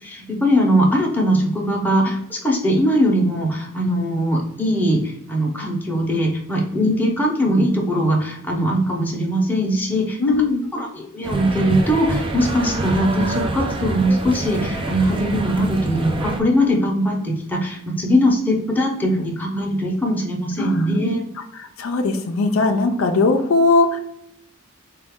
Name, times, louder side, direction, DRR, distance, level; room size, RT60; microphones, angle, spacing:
voice 1, 0.0-10.2 10.7-21.2, equal, 10° left, -2 dB, 0.7 m, -20 dB
voice 2, 10.2-10.7 20.6-21.0 21.8-24.0, left 3 dB, 70° left, 6 dB, 0.4 m, -19 dB
sound 1, 11.2-16.4, right 2 dB, 25° right, 0.4 m, -26 dB
3.9 x 2.3 x 3.5 m, 0.76 s
head